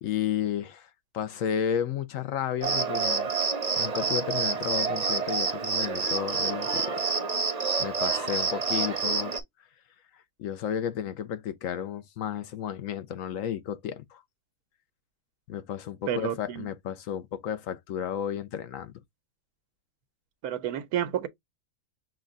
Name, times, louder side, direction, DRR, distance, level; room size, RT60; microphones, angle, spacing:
voice 1, 0.0-3.3 3.8-7.0 7.8-9.3 10.4-14.2 15.5-18.9, left 9 dB, 70° left, 1.1 m, -32 dB
Cricket, 2.6-9.4, right 4 dB, 35° right, 0.8 m, -28 dB
voice 2, 16.1-16.7 20.4-21.3, right 10 dB, 85° right, 1.3 m, -30 dB
6.4 x 2.2 x 3.7 m
omnidirectional pair, 1.6 m